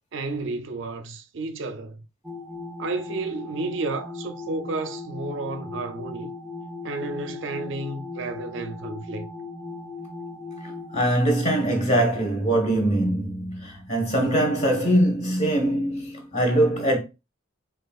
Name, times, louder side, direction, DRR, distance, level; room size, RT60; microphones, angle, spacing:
voice 1, 0.1-2.0 2.8-6.3 6.8-9.3, right 3 dB, 60° right, 0.5 m, -31 dB
sound 1, 2.2-11.0, left 3 dB, ahead, 0.5 m, -38 dB
voice 2, 10.9-17.0, right 1 dB, 35° left, 1.3 m, -22 dB
6.4 x 2.4 x 2.4 m
head